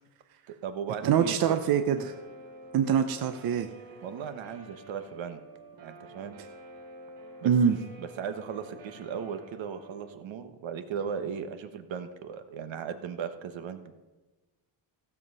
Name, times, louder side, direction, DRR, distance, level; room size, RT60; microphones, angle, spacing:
voice 1, 0.5-1.6 4.0-5.4 5.8-6.4 7.4-13.9, right 7 dB, 70° right, 9 dB, 1.2 m, -37 dB
voice 2, 1.0-2.1 2.7-3.7 7.4-7.8, right 8 dB, 50° right, 7 dB, 0.7 m, -24 dB
Guitar, 1.4-10.1, right 1 dB, 85° right, 3.3 m, -49 dB
16.0 x 7.3 x 5.4 m, 1.2 s
cardioid pair, 160°, 48 cm